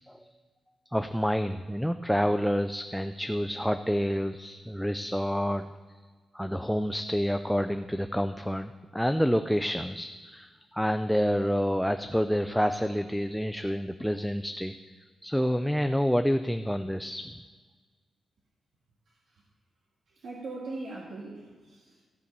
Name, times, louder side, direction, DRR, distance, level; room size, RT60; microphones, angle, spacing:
voice 1, 0.9-5.7 6.3-14.8 15.2-17.2, equal, ahead, 8 dB, 0.3 m, -28 dB
voice 2, 19.1-19.4 20.1-22.0, right 2 dB, 60° right, -3 dB, 1.8 m, -41 dB
15.5 x 5.4 x 6.7 m, 1.5 s
wide cardioid pair, 175°, 0 cm